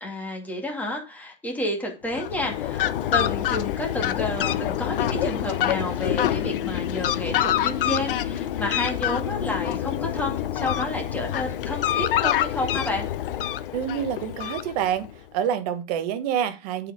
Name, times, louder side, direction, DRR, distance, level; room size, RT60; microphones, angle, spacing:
voice 1, 0.0-13.1, left 1 dB, 5° left, 2.2 m, -30 dB
Fowl, 2.1-15.1, left 11 dB, 65° left, 0.9 m, -26 dB
voice 2, 13.7-16.9, right 9 dB, 40° right, 1.1 m, -27 dB
8.3 x 4.8 x 5.1 m
hypercardioid pair, 150°, 29 cm